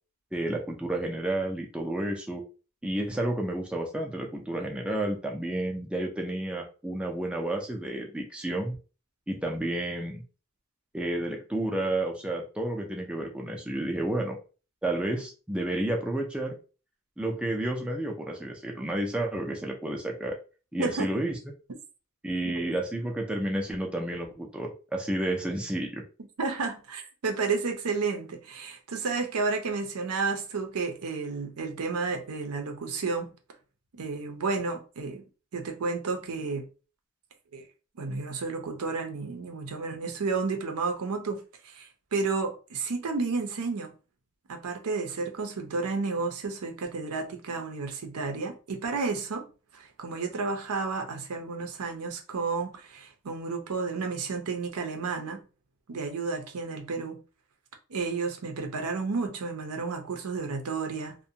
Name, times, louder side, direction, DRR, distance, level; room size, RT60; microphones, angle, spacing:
voice 1, 0.3-2.4 2.8-8.8 9.3-10.2 10.9-14.4 14.8-16.6 17.2-20.4 20.7-21.3 22.2-26.0, right 1 dB, 5° right, 0.4 m, -31 dB
voice 2, 20.8-21.2 26.4-33.3 33.9-35.2 35.5-36.6 37.5-37.7 38.0-43.9 44.5-49.5 49.7-55.4 55.9-57.2 57.9-61.2, right 4 dB, 75° right, 0.6 m, -31 dB
2.5 x 2.2 x 2.7 m
head